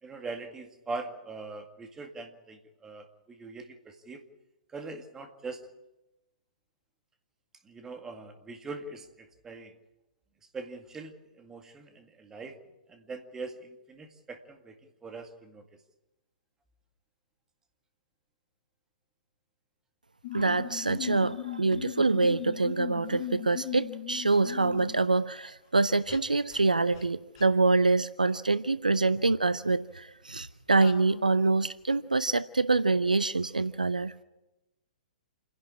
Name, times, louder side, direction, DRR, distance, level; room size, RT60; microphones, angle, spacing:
voice 1, 0.0-4.2 4.7-5.7 7.6-9.7 10.5-12.6 12.9-15.6, right 3 dB, 10° right, 5 dB, 2.0 m, -42 dB
sound 1, 20.2-25.0 26.1-26.2 26.5-26.6 26.9-27.1 27.4-27.5 30.8-31.3, left 15 dB, 40° left, 1.3 m, -39 dB
voice 2, 20.3-34.1, right 3 dB, 80° right, 16 dB, 0.7 m, -25 dB
28.0 x 11.0 x 8.5 m, 1.0 s
figure-of-eight pair, 115°, 4 cm